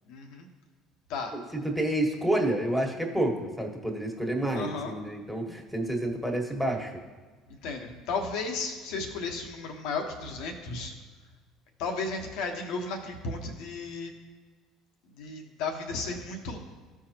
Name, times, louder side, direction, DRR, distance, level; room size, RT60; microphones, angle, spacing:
voice 1, 0.1-0.5 1.1-1.3 4.5-4.9 7.6-10.9 11.8-14.1 15.2-16.6, left 4 dB, 70° left, 3 dB, 1.3 m, -34 dB
voice 2, 1.3-6.9, right 1 dB, ahead, 2 dB, 1.7 m, -29 dB
14.0 x 4.7 x 3.0 m, 1.4 s
hypercardioid pair, 75°, 0 cm